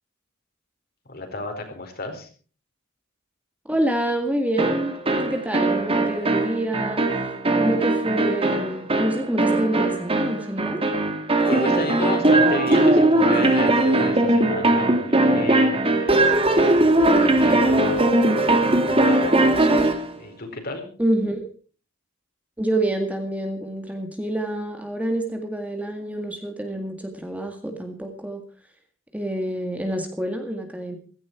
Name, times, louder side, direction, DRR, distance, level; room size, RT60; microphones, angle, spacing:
voice 1, 1.1-2.3 11.5-18.1 18.6-19.5 20.2-20.8, left 2 dB, 50° left, 5 dB, 4.4 m, -32 dB
voice 2, 3.7-4.9 5.2-7.1 7.5-10.8 21.0-21.5 22.6-28.4 29.1-31.0, right 1 dB, 5° right, 5 dB, 2.0 m, -27 dB
sound 1, 4.6-20.1, right 2 dB, 30° right, 2.2 m, -20 dB
16.5 x 15.5 x 4.6 m, 0.40 s
head